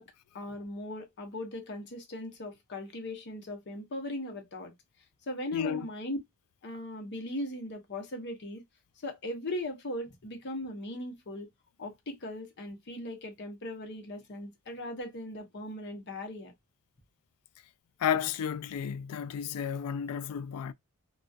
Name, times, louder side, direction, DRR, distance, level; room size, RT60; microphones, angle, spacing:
voice 1, 0.0-4.7 5.3-6.2 6.6-8.6 9.0-11.5 11.8-16.5, left 1 dB, 50° left, 0.7 m, -38 dB
voice 2, 5.5-5.9 18.0-20.7, left 8 dB, 85° left, 0.3 m, -32 dB
2.3 x 2.2 x 2.5 m
head